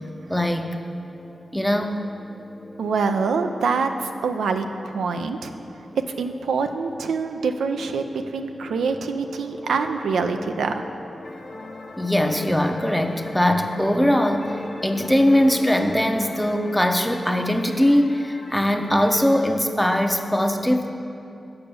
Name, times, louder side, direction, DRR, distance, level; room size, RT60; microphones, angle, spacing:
voice 1, 0.3-0.8 1.5-2.0 12.0-20.9, left 1 dB, 5° left, 5 dB, 0.7 m, -21 dB
sound 1, 0.8-17.3, left 2 dB, 50° left, 1.0 m, -41 dB
voice 2, 2.8-5.5 5.9-8.0 8.3-10.8, right 5 dB, 90° right, 6 dB, 0.4 m, -25 dB
sound 2, 11.2-19.4, left 2 dB, 80° left, 0.8 m, -44 dB
6.9 x 5.3 x 6.8 m, 2.7 s
cardioid pair, 40°, 0 cm